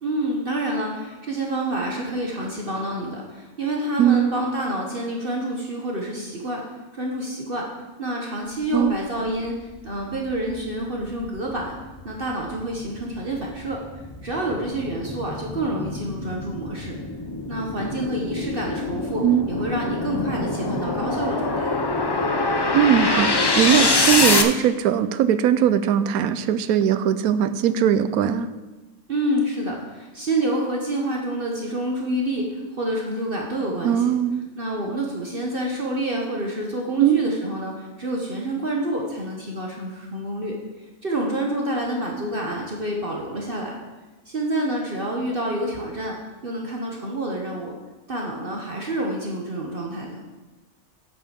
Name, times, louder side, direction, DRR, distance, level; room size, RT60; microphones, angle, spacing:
voice 1, 0.0-6.6 6.9-7.6 8.0-11.8 12.0-13.8 14.2-17.0 17.5-21.7 29.1-34.1 34.6-40.5 41.0-43.7 44.3-46.2 46.4-47.7 48.1-50.2, right 1 dB, 40° right, -1 dB, 1.2 m, -28 dB
voice 2, 4.0-4.3 8.7-9.0 19.2-19.5 22.7-28.5 33.8-34.4 37.0-37.2, right 9 dB, 80° right, 12 dB, 1.1 m, -20 dB
sound 1, 9.7-9.8 10.3-24.4, left 3 dB, 40° left, 0.3 m, -25 dB
8.0 x 7.7 x 5.2 m, 1.2 s
omnidirectional pair, 1.5 m